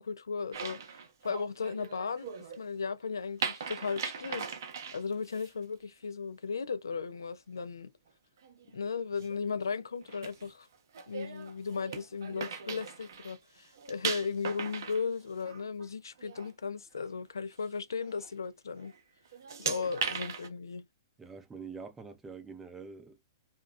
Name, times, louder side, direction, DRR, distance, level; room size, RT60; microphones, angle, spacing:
voice 1, 0.0-2.3 2.6-4.5 4.9-7.9 8.7-10.7 11.1-18.9 19.6-20.8, left 5 dB, 75° left, 0.4 m, -36 dB
sound 1, 0.5-2.6 3.4-5.5 8.4-8.8 9.2-9.4 10.0-13.4 13.6-15.9 16.2-16.5 17.0-17.1 18.0-18.3 18.8-19.0 19.3-20.5, right 6 dB, 60° right, 0.6 m, -39 dB
voice 2, 21.2-23.2, right 5 dB, 10° right, 0.6 m, -45 dB
2.8 x 2.2 x 2.3 m
figure-of-eight pair, 110°, 2 cm